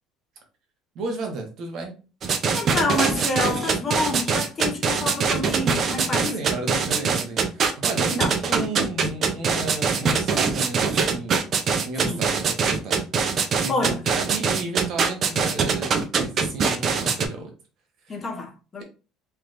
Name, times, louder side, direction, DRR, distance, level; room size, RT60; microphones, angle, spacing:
voice 1, 0.9-1.9 6.1-11.5 11.8-13.1 13.3-17.5 18.0-18.2, right 2 dB, 55° right, 1.0 m, -33 dB
sound 1, 2.2-17.3, right 5 dB, 40° right, 0.5 m, -23 dB
voice 2, 2.5-6.3 8.0-8.3 12.0-12.2 13.7-14.0 18.1-18.8, left 2 dB, 25° left, 0.7 m, -28 dB
3.3 x 2.9 x 2.5 m
cardioid pair, 140°, 0 cm